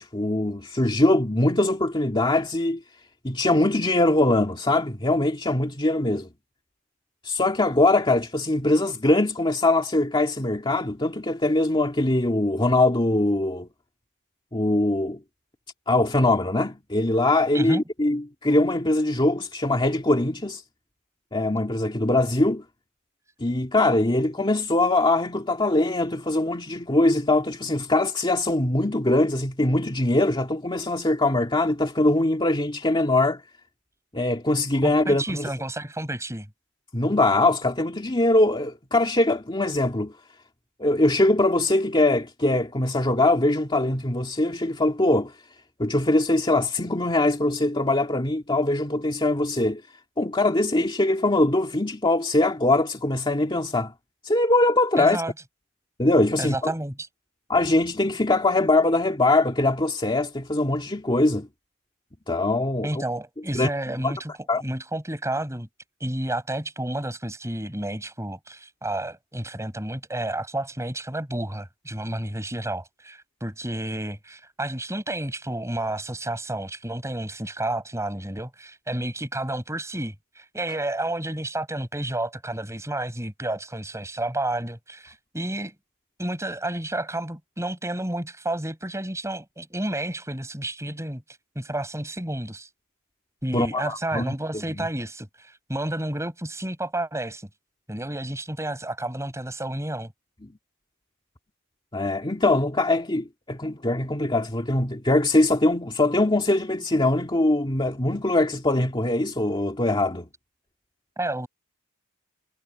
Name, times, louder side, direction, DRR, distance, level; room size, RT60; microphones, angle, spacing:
voice 1, 0.0-2.8 3.2-6.3 7.2-13.7 14.5-15.2 15.9-20.6 21.3-22.6 23.4-33.4 34.1-35.5 36.9-40.1 40.8-45.3 45.8-49.8 50.2-53.9 54.2-55.2 56.0-56.7 57.5-61.5 62.3-63.0 63.5-63.7 64.0-64.1 64.5-64.6 93.5-94.9 101.9-110.3, left 2 dB, 20° left, 2.0 m, -22 dB
voice 2, 34.8-36.5 55.0-55.3 56.4-57.1 62.8-65.7 66.0-85.7 86.2-91.2 91.6-92.7 93.4-97.5 97.9-100.1 111.2-111.5, right 1 dB, 15° right, 7.2 m, -31 dB
head